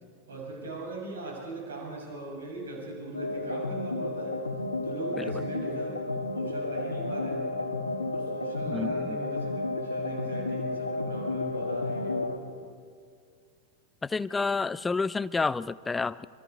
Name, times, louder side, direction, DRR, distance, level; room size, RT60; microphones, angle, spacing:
voice 1, 0.3-4.4 4.8-6.0 6.3-7.8 8.1-12.6, right 2 dB, 65° right, -1 dB, 7.1 m, -40 dB
sound 1, 3.1-12.4, left 2 dB, 85° left, 1.7 m, -32 dB
voice 2, 8.7-9.2 14.0-16.3, left 4 dB, 10° left, 18 dB, 0.5 m, -29 dB
27.0 x 26.0 x 4.7 m, 2.2 s
figure-of-eight pair, 90°, 0 cm